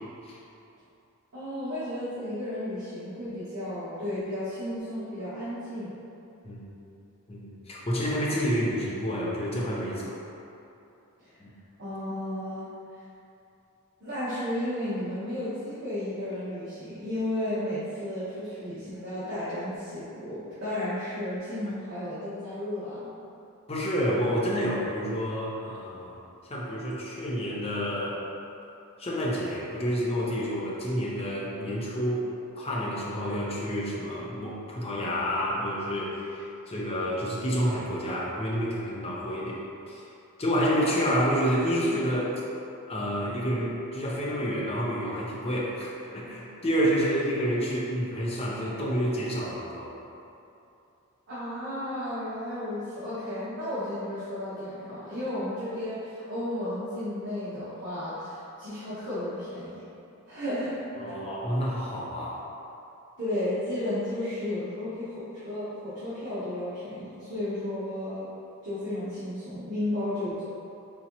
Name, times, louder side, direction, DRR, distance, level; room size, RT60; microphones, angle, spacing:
voice 1, 1.3-5.9 11.2-11.3 11.8-12.7 14.0-23.1 51.3-59.8 60.3-60.8 61.1-61.2 63.2-68.3 68.6-70.5, left 1 dB, 50° right, -13 dB, 1.0 m, -33 dB
voice 2, 7.3-10.2 11.4-11.5 23.7-26.2 26.5-28.2 29.0-32.3 32.6-39.6 39.9-40.0 40.4-42.3 42.9-49.9 61.0-62.4, equal, 25° left, -5 dB, 0.7 m, -29 dB
4.1 x 3.6 x 2.9 m, 2.7 s
head